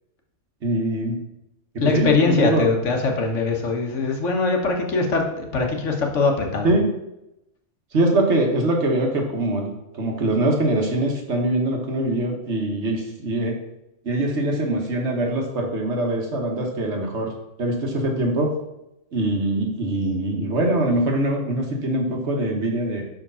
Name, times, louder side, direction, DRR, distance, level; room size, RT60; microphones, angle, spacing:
voice 1, 0.6-1.2 1.8-2.7 6.6-6.9 7.9-13.6 14.0-17.3 17.6-18.5 19.1-23.0, right 1 dB, 65° right, 2 dB, 1.6 m, -23 dB
voice 2, 1.8-6.7, left 3 dB, 80° left, 3 dB, 1.5 m, -22 dB
5.9 x 5.1 x 5.5 m, 0.87 s
omnidirectional pair, 1.2 m